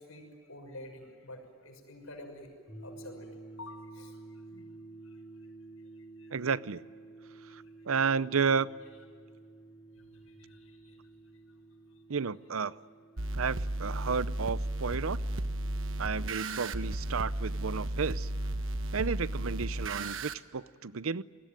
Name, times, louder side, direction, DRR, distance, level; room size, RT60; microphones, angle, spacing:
voice 1, 0.0-2.5 2.8-3.3 3.6-4.7 5.0-5.5 6.0-6.3 7.6-7.9 10.0-11.0 13.2-13.3 14.0-14.1, left 1 dB, 85° left, 6.3 m, -50 dB
sound 1, 2.7-18.5, right 2 dB, 25° left, 6.7 m, -52 dB
voice 2, 6.3-6.8 7.5-8.7 12.1-12.8 13.3-15.2 16.0-18.3 18.9-21.2, right 5 dB, 85° right, 0.7 m, -32 dB
sound 2, 13.2-20.3, right 1 dB, 70° right, 1.2 m, -34 dB
29.5 x 20.5 x 9.2 m
head